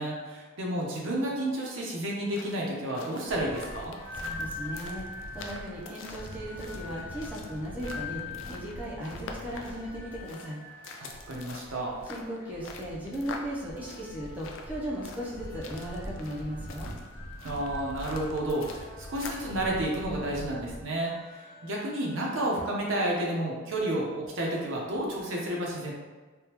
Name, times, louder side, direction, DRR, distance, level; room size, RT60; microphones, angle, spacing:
voice 1, 0.0-3.9 11.0-11.9 17.4-25.9, right 1 dB, 75° right, -2 dB, 0.7 m, -31 dB
sound 1, 2.1-19.5, left 4 dB, 70° left, 0.4 m, -46 dB
sound 2, 3.3-20.8, equal, 40° left, 0.8 m, -44 dB
sound 3, 3.5-22.2, left 2 dB, 10° left, 0.9 m, -46 dB
voice 2, 4.2-8.2 8.5-10.6 12.1-16.9, equal, 10° right, -6 dB, 0.5 m, -37 dB
3.5 x 2.2 x 2.9 m, 1.3 s
head